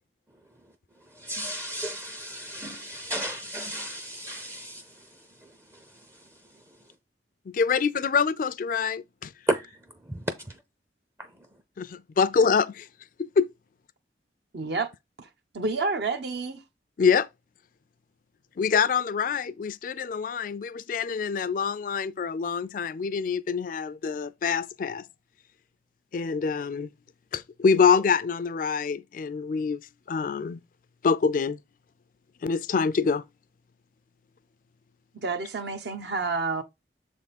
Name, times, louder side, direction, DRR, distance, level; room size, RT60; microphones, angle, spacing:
voice 1, 1.1-5.1 5.4-5.8 9.5-9.7 10.1-10.2, right 1 dB, 15° right, 0.5 m, -33 dB
voice 2, 7.5-9.3 11.8-12.9 13.2-13.5 17.0-17.3 18.6-25.1 26.1-26.9 27.3-29.8 30.1-30.6 31.0-31.6 32.4-33.2, left 5 dB, 50° left, 0.3 m, -25 dB
voice 3, 14.5-14.9 15.2-15.3 15.5-16.6 35.1-36.6, right 3 dB, 70° right, 0.8 m, -29 dB
7.0 x 3.5 x 4.1 m
head